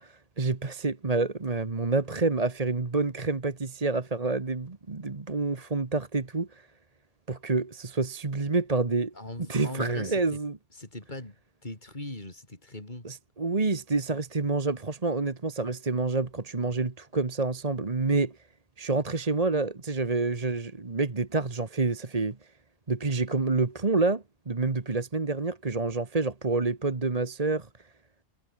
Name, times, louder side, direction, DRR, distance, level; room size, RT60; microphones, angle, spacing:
voice 1, 0.0-6.7 7.3-9.1 9.5-10.6 13.0-18.4 18.8-22.4 22.9-27.7, right 3 dB, 30° right, 1.5 m, -28 dB
voice 2, 9.1-10.4 10.7-11.4 11.6-13.1, left 2 dB, 40° left, 4.9 m, -40 dB
omnidirectional pair, 1.3 m